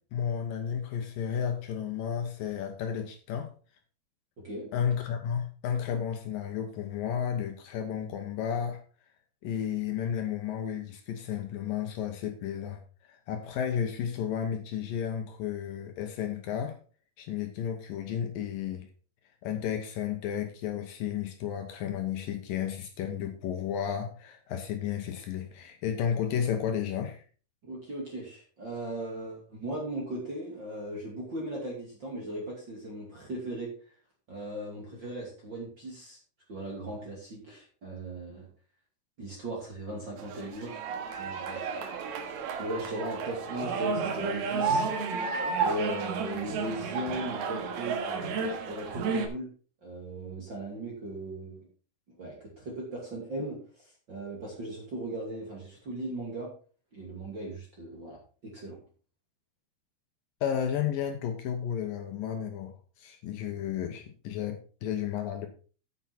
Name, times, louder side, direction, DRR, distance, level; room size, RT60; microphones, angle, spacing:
voice 1, 0.1-3.5 4.7-8.8 9.4-12.8 13.1-16.7 17.2-18.9 19.4-27.2 60.4-65.5, left 8 dB, 70° left, 5 dB, 2.6 m, -32 dB
voice 2, 4.4-4.7 27.6-33.7 34.3-36.2 36.5-38.5 39.2-40.8 41.2-42.0 42.6-45.2 45.6-49.5 49.8-51.6 52.1-56.5 56.9-58.8, right 1 dB, 35° right, -2 dB, 2.8 m, -38 dB
sound 1, 40.2-49.3, right 5 dB, 85° right, 3.3 m, -32 dB
9.8 x 8.5 x 4.4 m, 0.39 s
omnidirectional pair, 4.4 m